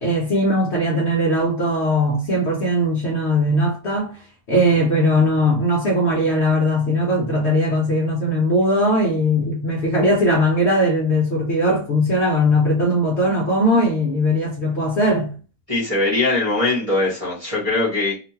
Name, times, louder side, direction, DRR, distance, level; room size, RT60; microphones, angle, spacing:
voice 1, 0.0-4.1 4.5-15.3, equal, 60° left, 0.8 m, -19 dB
voice 2, 15.7-18.1, left 2 dB, 25° right, 0.8 m, -21 dB
2.9 x 2.2 x 2.7 m
omnidirectional pair, 1.8 m